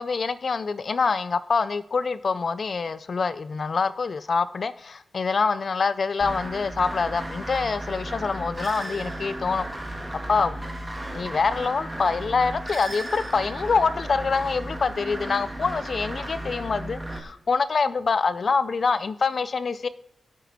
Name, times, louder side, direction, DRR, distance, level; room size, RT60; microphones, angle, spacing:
voice 1, 0.0-9.6 10.3-10.6 11.1-19.9, left 4 dB, 45° left, 14 dB, 0.4 m, -25 dB
sound 1, 6.2-17.2, right 1 dB, 10° right, 1.7 m, -35 dB
20.5 x 8.4 x 4.0 m, 0.72 s
wide cardioid pair, 155°, 0 cm